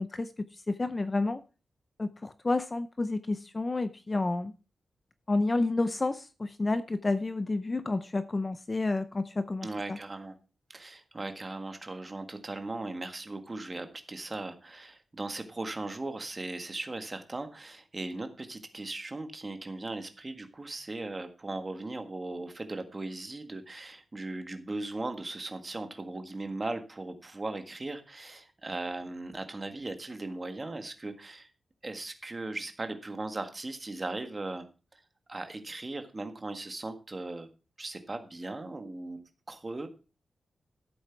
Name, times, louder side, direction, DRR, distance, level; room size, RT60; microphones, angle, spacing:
voice 1, 0.0-1.4 2.0-4.5 5.3-10.0, left 2 dB, 25° left, 12 dB, 0.5 m, -30 dB
voice 2, 9.6-10.4 10.7-31.5 31.8-34.7 34.9-35.0 35.3-37.5 37.8-39.9, right 2 dB, 25° right, 7 dB, 1.6 m, -38 dB
13.5 x 7.9 x 4.5 m, 0.33 s
wide cardioid pair, 170°, 0 cm